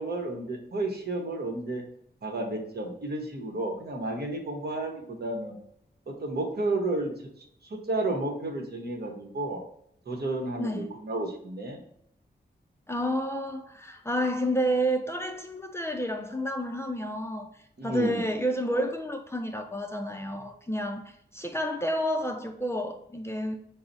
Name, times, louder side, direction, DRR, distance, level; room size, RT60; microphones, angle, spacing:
voice 1, 0.0-1.8 2.2-5.5 6.1-9.6 10.1-11.8 17.8-18.3, right 2 dB, 65° right, 1.0 m, -32 dB
voice 2, 10.6-10.9 12.9-17.5 17.8-23.6, equal, 15° left, 0.4 m, -30 dB
5.7 x 2.0 x 3.9 m
wide cardioid pair, 130°, 18 cm